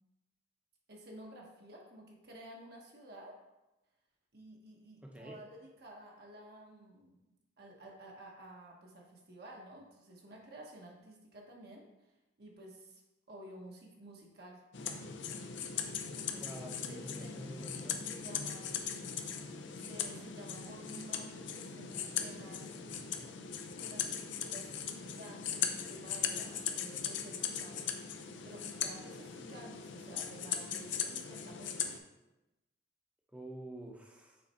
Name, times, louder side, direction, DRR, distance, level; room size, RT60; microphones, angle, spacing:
voice 1, 0.9-3.4 4.3-7.2 7.6-12.1 12.4-13.0 13.3-14.6 16.1-16.6 16.9-19.1 19.7-22.7 23.8-28.0 28.4-32.0, right 1 dB, 60° right, -1 dB, 1.1 m, -52 dB
voice 2, 5.0-5.4 16.4-18.0 33.3-34.4, right 1 dB, 5° right, 0 dB, 0.8 m, -48 dB
sound 1, 14.7-32.0, left 7 dB, 80° left, 0.6 m, -39 dB
6.5 x 4.1 x 4.2 m, 0.98 s
head